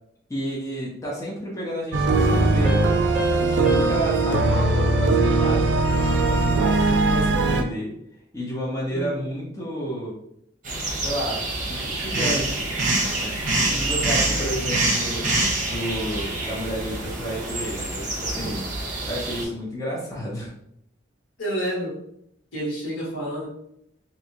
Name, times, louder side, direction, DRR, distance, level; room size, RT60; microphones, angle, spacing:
voice 1, 0.3-3.0 3.4-7.9 8.3-10.2 11.0-12.8 13.2-18.7 19.1-20.5, equal, 15° left, -6 dB, 0.7 m, -31 dB
sound 1, 1.9-7.6, right 3 dB, 65° right, 0.4 m, -20 dB
sound 2, 2.6-5.9, left 1 dB, 5° right, 1.3 m, -31 dB
sound 3, 10.6-19.4, right 2 dB, 40° right, 0.8 m, -26 dB
voice 2, 13.6-14.5 21.4-22.0 22.5-23.5, right 1 dB, 70° left, -5 dB, 1.4 m, -30 dB
3.1 x 2.7 x 2.8 m, 0.75 s
head